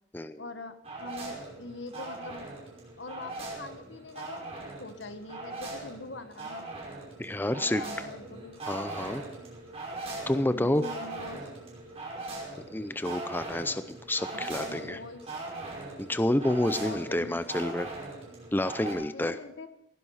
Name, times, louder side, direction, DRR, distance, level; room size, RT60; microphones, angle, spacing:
voice 1, 0.4-2.5 3.0-6.6 7.5-8.6 10.5-11.5 14.3-15.2 16.7-17.4 19.1-19.7, left 2 dB, 85° left, 9 dB, 1.4 m, -43 dB
sound 1, 0.8-18.9, right 2 dB, 35° right, 5.4 m, -40 dB
voice 2, 7.2-7.8 8.7-9.2 10.3-10.8 12.7-15.0 16.0-17.9 18.5-19.4, left 1 dB, 10° left, 12 dB, 0.6 m, -29 dB
17.5 x 10.5 x 5.6 m, 0.80 s
head